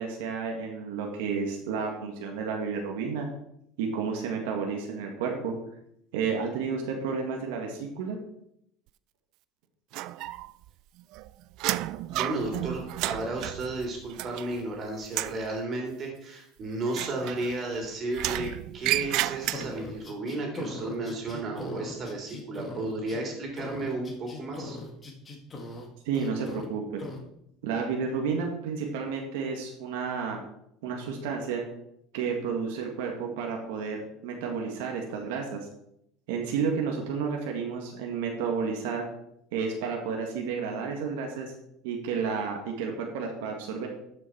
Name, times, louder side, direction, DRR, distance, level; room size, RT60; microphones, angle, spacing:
voice 1, 0.0-3.3 3.8-5.5 6.1-8.2 26.1-27.0 27.6-30.4 30.8-31.6 32.1-35.6 36.3-39.0 39.5-41.5 41.8-43.9, right 5 dB, 85° right, 1 dB, 1.8 m, -31 dB
sound 1, 9.9-10.7 11.0-14.7 15.0-15.5 16.9-17.8 18.1-20.0, right 16 dB, 60° right, 0.4 m, -32 dB
voice 2, 12.1-24.8, right 2 dB, 35° right, 1 dB, 3.3 m, -33 dB
sound 2, 19.5-23.2 23.6-25.9 26.1-26.7 27.0-27.2, left 2 dB, 20° left, 1.8 m, -40 dB
12.5 x 6.2 x 4.5 m, 0.76 s
cardioid pair, 135°, 0 cm